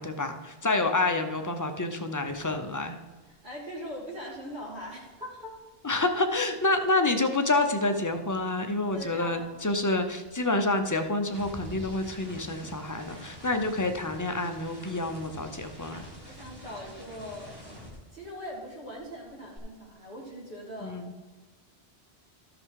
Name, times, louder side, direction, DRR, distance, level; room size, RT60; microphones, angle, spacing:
voice 1, 0.0-3.0 5.8-16.1 20.8-21.1, left 2 dB, 20° left, 6 dB, 0.6 m, -28 dB
sound 1, 2.3-2.5 2.8-7.1 7.4-18.7 18.9-19.6, left 1 dB, 20° right, 2.1 m, -48 dB
voice 2, 3.3-5.6 5.9-6.0 8.9-9.6 15.9-17.6 17.9-21.0, equal, 45° right, -7 dB, 2.7 m, -41 dB
13.5 x 5.5 x 4.7 m, 1.3 s
omnidirectional pair, 1.1 m